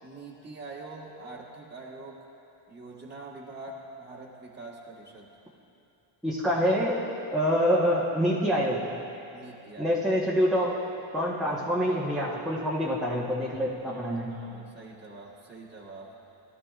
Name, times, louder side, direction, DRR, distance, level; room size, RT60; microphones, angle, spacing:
voice 1, 0.0-2.3 2.7-5.3 9.3-10.0 11.5-11.7 13.9-16.2, right 2 dB, 20° right, -4 dB, 1.5 m, -44 dB
voice 2, 6.2-7.0 7.3-8.8 9.8-10.8 11.1-14.4, equal, ahead, -8 dB, 1.2 m, -26 dB
18.5 x 12.5 x 2.5 m, 2.9 s
cardioid pair, 115°, 50 cm